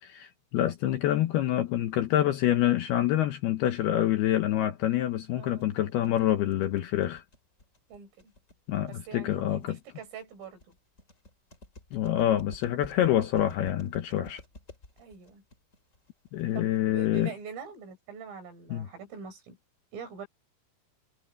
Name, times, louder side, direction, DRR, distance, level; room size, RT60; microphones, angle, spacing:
voice 1, 0.0-7.2 8.7-9.8 11.9-14.4 16.3-17.3 18.7-18.9, left 12 dB, 75° left, 2.4 m, -26 dB
sound 1, 5.2-17.1, left 2 dB, 20° left, 3.0 m, -51 dB
voice 2, 5.3-5.8 7.9-8.3 8.9-10.7 15.0-15.4 16.5-19.6 19.9-20.3, right 6 dB, 90° right, 8.5 m, -44 dB
omnidirectional pair, 5.6 m